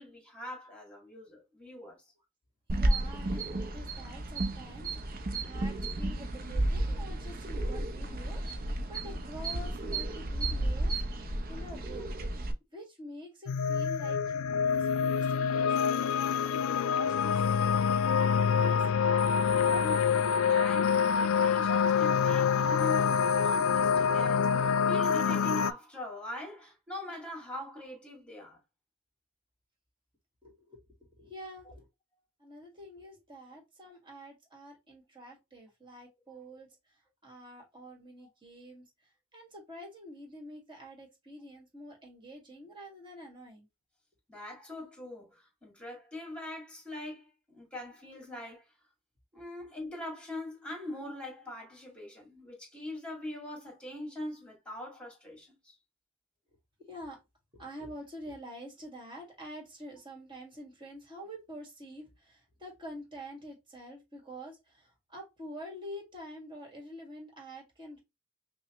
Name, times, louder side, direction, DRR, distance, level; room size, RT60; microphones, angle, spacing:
voice 1, 0.0-2.0 19.6-28.6 44.3-48.7 49.3-55.8, left 1 dB, 5° left, 2.0 m, -42 dB
voice 2, 2.7-12.1 12.7-19.1 20.1-20.2 30.4-31.9 32.4-36.7 37.2-38.9 39.3-43.7 56.9-57.2 57.5-68.0, equal, 25° right, 1.7 m, -47 dB
sound 1, 2.7-12.5, right 1 dB, 45° right, 0.6 m, -32 dB
sound 2, 13.5-25.7, left 6 dB, 75° left, 0.3 m, -26 dB
5.4 x 2.1 x 3.0 m
head